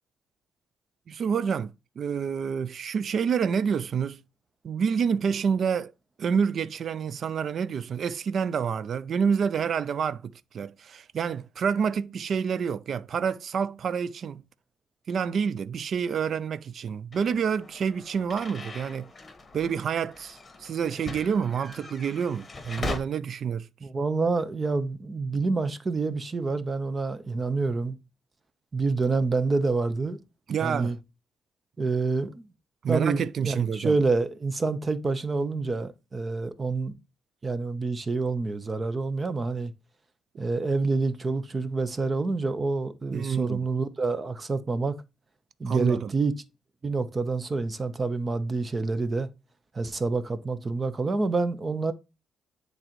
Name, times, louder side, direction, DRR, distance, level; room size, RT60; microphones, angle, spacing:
voice 1, 1.1-4.2 4.6-5.9 6.2-14.4 15.1-19.1 19.5-23.7 30.5-31.0 32.8-33.9 43.1-43.7 45.7-46.1, right 7 dB, 55° right, 0.4 m, -28 dB
sound 1, 17.1-23.0, left 2 dB, 25° left, 1.5 m, -40 dB
voice 2, 23.8-28.0 28.7-30.2 30.6-31.0 31.8-32.5 32.9-36.9 37.4-39.7 40.4-45.0 45.6-46.3 46.8-49.3 49.7-51.9, right 3 dB, 30° right, 0.8 m, -27 dB
9.8 x 4.0 x 3.0 m
cardioid pair, 90°, 0 cm